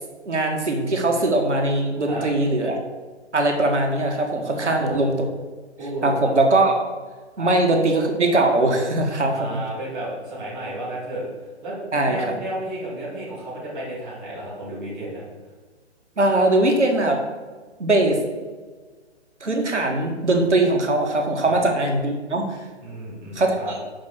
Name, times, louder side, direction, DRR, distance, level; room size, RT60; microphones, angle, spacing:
voice 1, 0.3-2.8 3.3-5.3 6.0-6.8 7.4-9.6 11.9-12.3 16.2-17.2 17.8-18.2 19.4-22.6 23.4-23.8, right 2 dB, 80° right, 2 dB, 1.7 m, -21 dB
voice 2, 4.5-5.1 5.8-6.2 7.4-7.5 9.3-11.3 11.6-15.2 21.4-21.6 22.8-23.7, right 1 dB, ahead, -11 dB, 0.4 m, -32 dB
6.0 x 5.3 x 6.0 m, 1.4 s
figure-of-eight pair, 135°, 34 cm